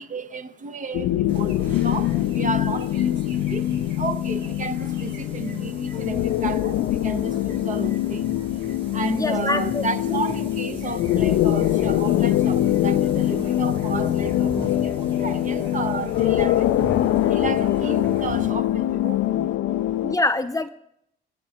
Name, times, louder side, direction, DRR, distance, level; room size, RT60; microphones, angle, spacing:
voice 1, 0.0-16.9 17.2-19.6 19.9-20.0, right 4 dB, 40° right, 0.8 m, -33 dB
sound 1, 0.9-20.2, left 13 dB, 85° left, 0.5 m, -23 dB
sound 2, 1.3-18.5, right 2 dB, 60° right, 1.9 m, -39 dB
voice 2, 9.1-10.2 10.7-10.8 20.0-20.7, left 2 dB, 15° left, 0.6 m, -25 dB
24.5 x 8.5 x 2.9 m
cardioid pair, 90°, 20 cm